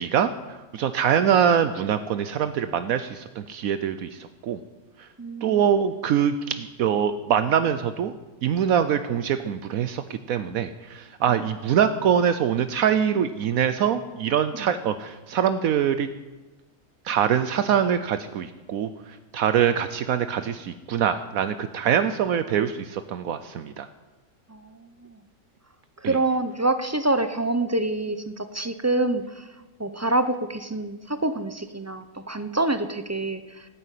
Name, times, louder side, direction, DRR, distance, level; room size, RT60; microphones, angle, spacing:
voice 1, 0.0-4.6 5.0-5.1 5.4-8.1 8.4-16.1 17.0-23.9 26.0-26.2, right 8 dB, 75° right, 11 dB, 1.1 m, -24 dB
voice 2, 5.2-5.7 14.6-14.7 24.5-25.2 26.1-29.5 29.8-33.7, right 2 dB, 20° right, 10 dB, 0.4 m, -26 dB
15.5 x 9.7 x 8.3 m, 1.1 s
omnidirectional pair, 1.5 m